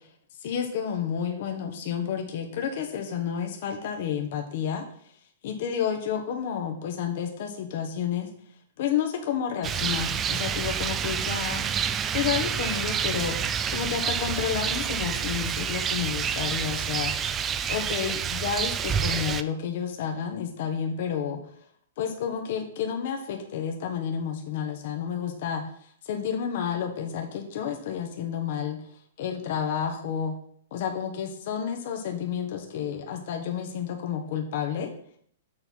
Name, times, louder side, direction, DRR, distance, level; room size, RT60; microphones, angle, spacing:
voice 1, 0.4-4.8 5.4-8.3 8.8-11.6 12.1-13.4 13.7-17.1 17.7-21.4 22.0-25.6 26.0-28.8 29.2-30.3 30.7-34.9, left 8 dB, 55° left, 4 dB, 1.1 m, -30 dB
Rain, 9.6-19.4, right 7 dB, 20° right, 0.3 m, -28 dB
6.9 x 4.2 x 5.4 m, 0.63 s
hypercardioid pair, 150°, 0 cm